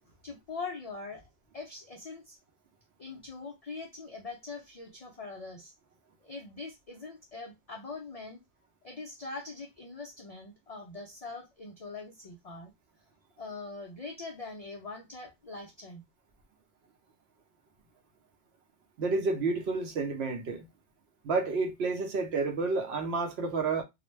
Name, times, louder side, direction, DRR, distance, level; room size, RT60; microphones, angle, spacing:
voice 1, 0.2-2.4 3.0-5.7 6.2-8.4 8.8-12.7 13.4-16.0, left 3 dB, 65° left, 0.3 m, -42 dB
voice 2, 19.0-20.7 21.2-23.8, right 4 dB, 70° right, 0.8 m, -30 dB
2.3 x 2.1 x 3.0 m
omnidirectional pair, 1.2 m